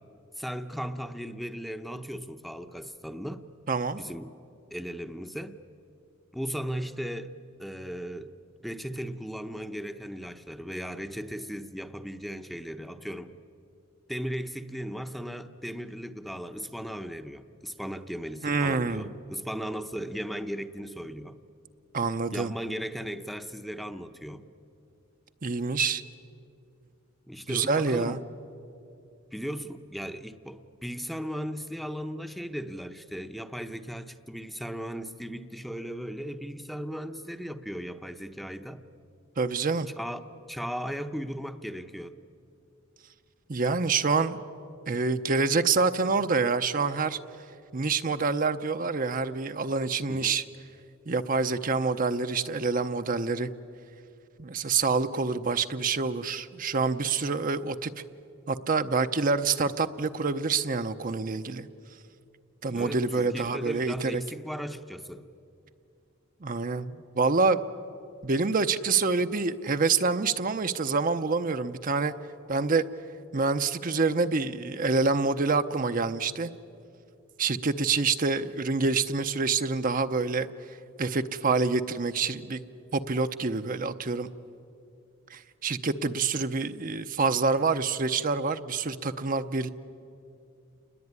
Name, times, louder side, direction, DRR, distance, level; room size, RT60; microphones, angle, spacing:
voice 1, 0.4-3.4 4.0-4.3 4.7-5.6 6.3-7.3 7.6-8.3 8.6-13.3 14.1-21.4 22.3-24.5 27.3-28.2 29.3-38.8 40.0-40.2 40.5-42.2 50.1-50.4 62.7-65.2, equal, ahead, 8 dB, 0.8 m, -37 dB
voice 2, 3.7-4.0 18.4-19.1 21.9-22.5 25.4-26.0 27.5-28.2 39.4-39.9 43.5-44.4 44.9-47.2 47.7-50.4 51.1-53.5 54.4-57.9 58.5-61.7 62.6-64.2 66.4-67.6 68.2-72.1 72.5-72.8 73.3-76.5 77.4-80.5 81.0-82.6 82.9-84.3 85.3-89.7, right 4 dB, 40° right, 9 dB, 0.7 m, -27 dB
29.0 x 20.5 x 9.6 m, 2.6 s
head